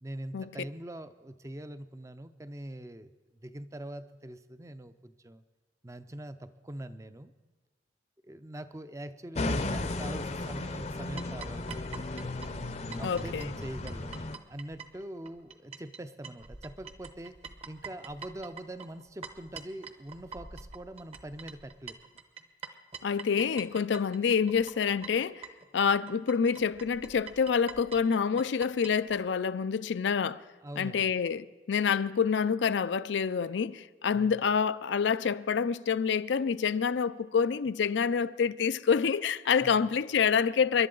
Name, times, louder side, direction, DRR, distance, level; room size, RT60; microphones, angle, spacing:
voice 1, 0.0-5.4 5.8-7.3 8.2-12.0 13.0-14.2 14.5-17.4 17.7-22.0 30.6-31.1 34.1-34.4 39.6-39.9, right 1 dB, 15° right, 0.5 m, -43 dB
sound 1, 9.4-14.4, left 2 dB, 35° left, 0.6 m, -35 dB
sound 2, 11.2-29.2, right 5 dB, 35° right, 0.9 m, -45 dB
voice 2, 13.0-13.5 23.0-25.4 25.7-30.4 30.8-40.9, left 6 dB, 80° left, 0.4 m, -27 dB
29.5 x 11.5 x 3.9 m
head